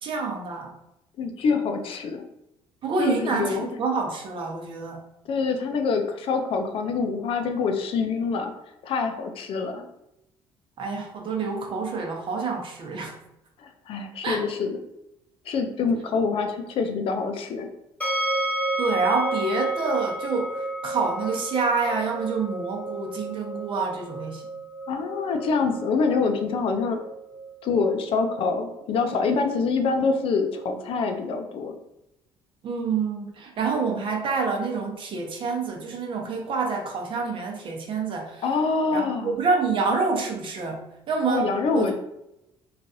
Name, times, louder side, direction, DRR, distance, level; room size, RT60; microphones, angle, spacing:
voice 1, 0.0-0.7 2.8-5.0 10.8-13.1 14.2-14.4 18.8-24.4 32.6-38.4 38.9-41.9, right 4 dB, 55° right, 1 dB, 0.8 m, -27 dB
voice 2, 1.2-2.3 3.0-3.7 5.3-8.5 8.8-9.9 13.6-14.8 15.5-17.7 24.9-27.0 27.6-31.8 33.7-33.8 38.4-39.3 41.3-41.9, left 4 dB, 60° left, 5 dB, 0.5 m, -25 dB
sound 1, 18.0-31.0, right 2 dB, 10° left, 0.8 m, -33 dB
3.1 x 2.4 x 2.6 m, 0.84 s
supercardioid pair, 75°, 10 cm